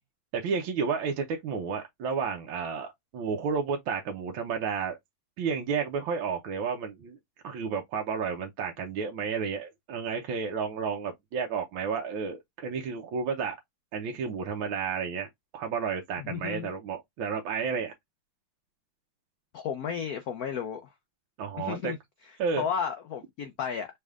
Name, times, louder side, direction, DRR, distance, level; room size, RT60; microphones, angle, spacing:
voice 1, 0.3-5.0 5.4-7.2 7.4-13.5 13.9-17.9 21.4-21.9 22.4-22.6, right 6 dB, 70° right, 1.5 m, -31 dB
voice 2, 16.2-16.7 19.5-20.9 21.6-22.0 22.6-23.9, left 7 dB, 75° left, 0.8 m, -33 dB
5.3 x 3.4 x 2.4 m
omnidirectional pair, 2.4 m